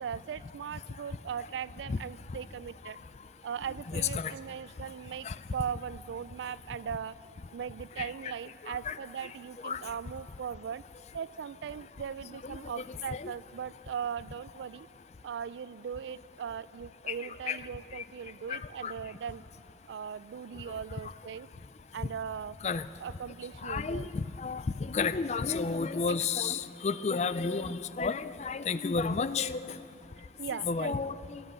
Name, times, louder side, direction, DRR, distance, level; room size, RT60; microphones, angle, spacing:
voice 1, 0.0-3.0 3.4-5.3 5.5-7.2 7.5-10.8 11.1-14.9 15.2-19.4 19.9-21.5 21.9-22.6 23.0-24.1 26.1-26.3 30.4-31.1, right 7 dB, 85° right, 19 dB, 0.3 m, -39 dB
voice 2, 3.9-4.3 5.3-5.4 8.0-8.3 8.6-9.0 9.6-9.8 12.4-12.6 12.9-13.3 17.1-17.6 18.5-18.9 22.6-22.8 23.6-29.8 30.5-31.4, left 5 dB, 40° left, 15 dB, 0.4 m, -32 dB
22.0 x 8.1 x 7.5 m, 2.8 s
head